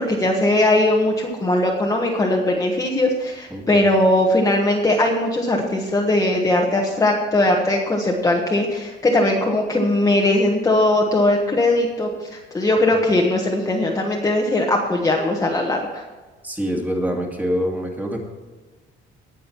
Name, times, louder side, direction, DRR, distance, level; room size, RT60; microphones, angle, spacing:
voice 1, 0.0-16.0, left 1 dB, 15° left, -1 dB, 1.2 m, -19 dB
voice 2, 3.5-3.8 16.4-18.2, equal, 10° right, 1 dB, 2.1 m, -25 dB
18.5 x 6.4 x 4.5 m, 1.3 s
cardioid pair, 160°, 21 cm